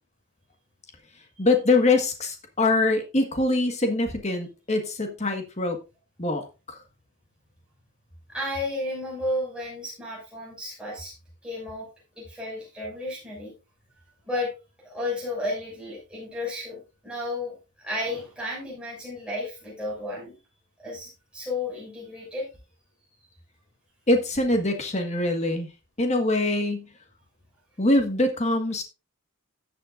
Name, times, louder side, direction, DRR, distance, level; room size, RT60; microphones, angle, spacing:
voice 1, 1.4-5.8 6.2-6.8 24.1-25.7 26.0-26.9 27.8-28.8, left 2 dB, 30° left, 5 dB, 1.5 m, -23 dB
voice 2, 8.3-11.1 11.4-11.9 12.2-13.5 14.2-14.5 14.8-20.4 20.8-22.5, left 1 dB, 5° right, -4 dB, 6.0 m, -33 dB
14.0 x 7.8 x 2.5 m, 0.29 s
head